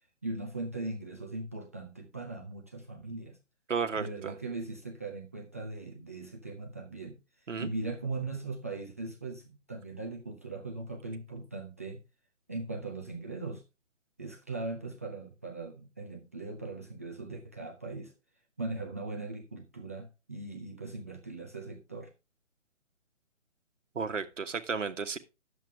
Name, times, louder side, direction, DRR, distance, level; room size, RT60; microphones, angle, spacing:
voice 1, 0.2-3.4 4.0-7.2 7.6-12.0 12.5-13.6 14.2-18.1 18.6-22.1, right 3 dB, 15° right, 0 dB, 0.5 m, -39 dB
voice 2, 3.7-4.3 7.5-7.7 23.9-25.2, right 5 dB, 80° right, 7 dB, 1.3 m, -33 dB
10.5 x 7.5 x 3.4 m, 0.27 s
figure-of-eight pair, 145°, 37 cm